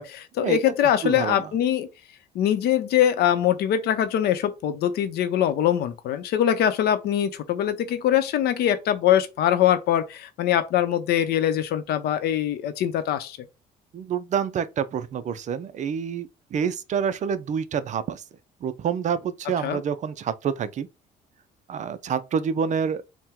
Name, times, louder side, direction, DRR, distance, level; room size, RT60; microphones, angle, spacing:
voice 1, 0.0-1.9 2.3-13.4 19.6-19.8, left 10 dB, 70° left, 0.7 m, -23 dB
voice 2, 1.0-1.5 13.9-18.2 18.6-20.9 21.7-23.0, right 7 dB, 45° right, 0.5 m, -27 dB
4.3 x 2.2 x 3.6 m
cardioid pair, 110°, 17 cm